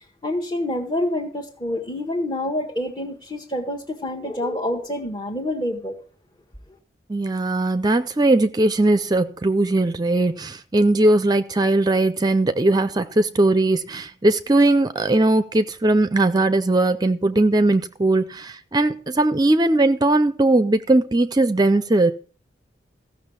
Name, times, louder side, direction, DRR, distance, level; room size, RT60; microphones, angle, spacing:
voice 1, 0.2-6.0, left 1 dB, 25° left, 1.2 m, -27 dB
voice 2, 7.1-22.1, right 2 dB, 25° right, 0.5 m, -19 dB
15.0 x 6.2 x 7.0 m
head